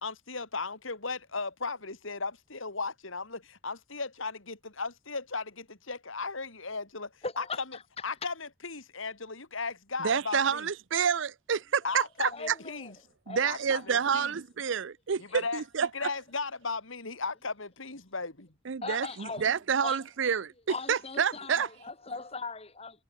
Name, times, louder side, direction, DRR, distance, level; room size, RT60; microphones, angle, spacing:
voice 1, 0.0-10.7 11.8-13.0 13.4-14.4 15.2-18.5, left 4 dB, 75° left, 3.3 m, -36 dB
voice 2, 7.2-8.3 11.9-12.0 12.3-12.9 13.3-14.1 18.8-20.0 20.7-22.9, left 4 dB, 30° left, 1.9 m, -40 dB
voice 3, 10.0-12.3 13.3-15.9 18.7-20.5 20.9-21.7, right 7 dB, 65° right, 0.5 m, -28 dB
head